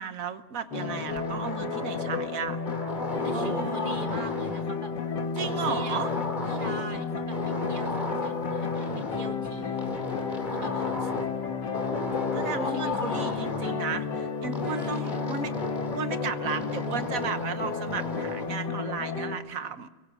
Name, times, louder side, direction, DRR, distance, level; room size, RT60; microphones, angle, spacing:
voice 1, 0.0-2.6 3.3-4.0 5.4-6.1 12.3-15.5 16.0-19.9, right 6 dB, 55° right, 11 dB, 1.4 m, -34 dB
sound 1, 0.7-19.4, left 5 dB, 85° left, 2.3 m, -32 dB
sound 2, 0.7-2.3 2.7-4.7 5.4-7.0 7.3-9.3 9.8-11.4 11.7-13.7 14.5-16.1 16.5-18.5, left 2 dB, 25° left, 2.9 m, -35 dB
voice 2, 3.2-4.9 5.4-6.1 6.5-9.9 10.2-10.8 12.7-13.5 14.6-15.2, right 3 dB, 30° right, 5 dB, 1.9 m, -41 dB
23.0 x 18.0 x 7.6 m, 1.2 s
omnidirectional pair, 1.8 m